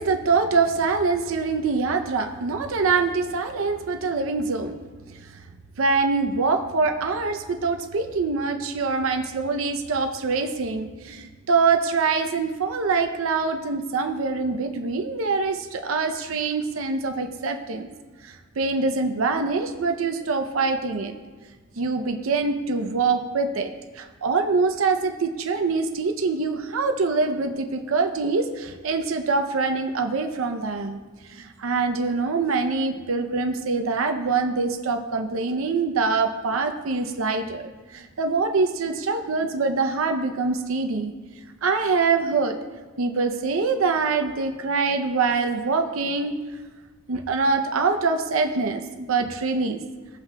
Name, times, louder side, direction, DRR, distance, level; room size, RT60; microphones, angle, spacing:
voice 1, 0.0-4.8 5.8-17.9 18.2-21.1 21.8-31.0 31.3-41.1 41.6-42.6 43.0-46.3 47.1-49.8, right 4 dB, 80° right, 6 dB, 0.6 m, -24 dB
17.0 x 5.8 x 2.3 m, 1.4 s
head